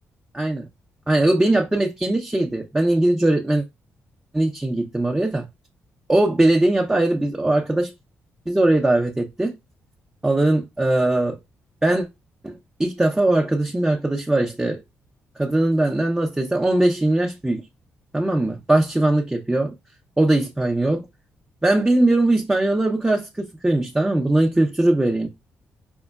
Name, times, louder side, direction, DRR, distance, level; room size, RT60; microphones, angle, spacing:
voice 1, 0.3-0.7 1.1-3.6 4.3-5.5 6.1-7.9 8.5-9.6 10.2-11.4 11.8-12.1 12.4-14.8 15.4-17.6 18.1-19.7 20.2-21.1 21.6-25.3, right 2 dB, 15° right, 0.7 m, -20 dB
5.2 x 2.1 x 2.3 m
supercardioid pair, 60°, 5 cm